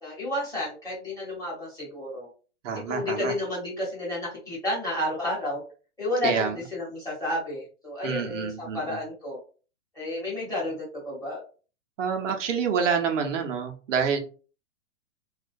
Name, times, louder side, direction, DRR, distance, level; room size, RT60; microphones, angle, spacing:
voice 1, 0.0-2.3 2.9-5.6 6.0-9.4 9.9-11.4, left 1 dB, 10° left, -6 dB, 1.0 m, -31 dB
voice 2, 2.6-3.3 6.2-6.6 8.0-9.0 12.0-14.2, right 6 dB, 85° right, 4 dB, 0.7 m, -27 dB
2.3 x 2.1 x 2.5 m, 0.36 s
hypercardioid pair, 155°, 36 cm